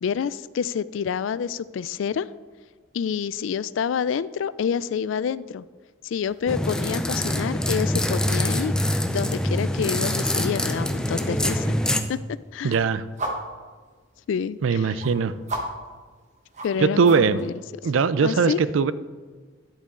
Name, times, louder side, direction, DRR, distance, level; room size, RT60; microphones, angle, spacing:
voice 1, 0.0-2.3 2.9-5.6 6.0-8.7 9.1-11.8 12.1-12.2 12.5-12.8 14.3-15.0 16.6-17.5 18.2-18.6, left 7 dB, 75° left, 17 dB, 0.3 m, -28 dB
sound 1, 6.5-12.0, left 1 dB, 5° left, 0.4 m, -24 dB
sound 2, 11.0-17.4, right 1 dB, 35° right, 1.2 m, -40 dB
voice 2, 12.6-13.0 14.6-15.3 16.8-17.4 17.8-18.9, right 5 dB, 90° right, 15 dB, 0.4 m, -20 dB
10.5 x 8.3 x 3.7 m, 1.5 s
head